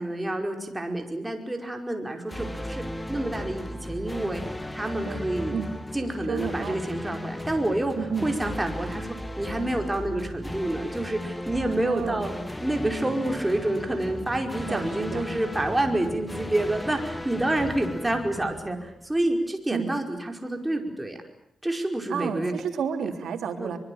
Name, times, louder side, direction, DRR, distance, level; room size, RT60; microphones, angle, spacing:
voice 1, 0.0-4.4 4.7-5.6 5.9-21.2 21.6-22.5 23.6-23.8, right 1 dB, 15° right, 3 dB, 5.1 m, -28 dB
sound 1, 2.3-19.3, left 1 dB, 10° left, 1.8 m, -36 dB
voice 2, 6.3-6.7 8.0-8.3 11.9-12.2 14.7-15.3 19.7-19.9 22.1-23.8, right 7 dB, 90° right, 3 dB, 3.5 m, -31 dB
24.0 x 24.0 x 8.7 m, 0.74 s
cardioid pair, 100°, 0 cm